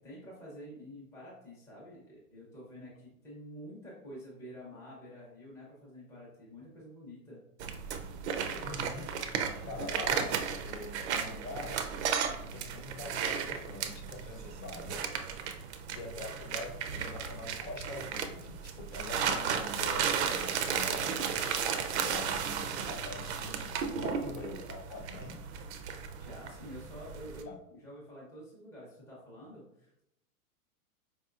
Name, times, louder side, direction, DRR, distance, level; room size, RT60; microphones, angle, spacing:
voice 1, 0.0-7.4 26.2-30.0, equal, 5° left, -7 dB, 0.7 m, -48 dB
sound 1, 7.6-27.4, right 7 dB, 50° right, 0.5 m, -35 dB
voice 2, 8.6-9.0 9.6-10.3 10.6-11.8 12.3-15.0 15.9-21.2 21.9-25.4 27.4-27.6, left 3 dB, 60° left, 1 dB, 0.9 m, -44 dB
4.6 x 2.8 x 2.3 m, 0.81 s
hypercardioid pair, 150°, 45 cm